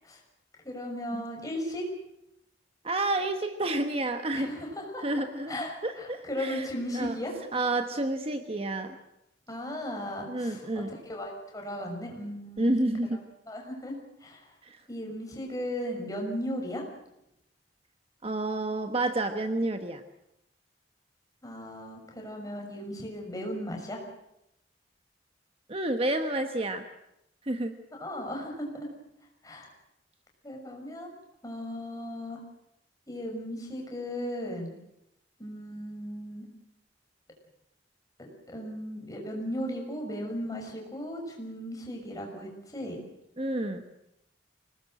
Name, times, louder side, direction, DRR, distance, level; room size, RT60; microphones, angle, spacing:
voice 1, 0.6-1.9 4.3-7.3 9.5-12.9 13.5-14.5 14.9-16.8 21.4-24.0 28.0-28.9 29.4-29.7 30.4-31.1 31.4-32.4 33.1-34.7 35.4-36.5 38.2-43.0, equal, 20° left, 1 dB, 6.0 m, -36 dB
voice 2, 2.8-4.5 5.0-6.7 6.9-7.2 7.5-9.0 10.3-10.9 12.6-13.2 14.6-14.8 18.2-20.0 25.7-26.9 27.4-27.8 43.4-43.8, right 2 dB, 35° right, 7 dB, 1.2 m, -30 dB
25.0 x 19.5 x 7.7 m, 0.82 s
head